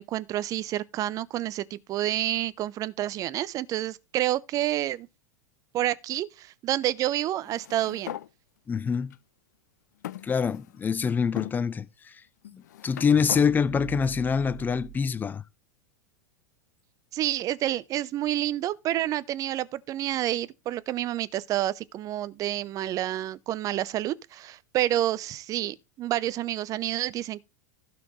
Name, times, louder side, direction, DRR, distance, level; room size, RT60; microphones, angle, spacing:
voice 1, 0.0-5.1 5.7-8.2 17.1-27.4, right 13 dB, 35° right, 0.7 m, -29 dB
sound 1, 7.4-8.3 9.1-9.2 10.0-10.9 11.4-11.6 12.4-13.5, left 12 dB, 70° left, 0.5 m, -39 dB
voice 2, 8.7-9.1 10.2-12.1 12.8-15.4, left 6 dB, 20° left, 0.7 m, -25 dB
sound 2, 13.1-15.0, right 15 dB, 60° right, 1.0 m, -42 dB
16.0 x 5.9 x 3.2 m
hypercardioid pair, 90°, 10 cm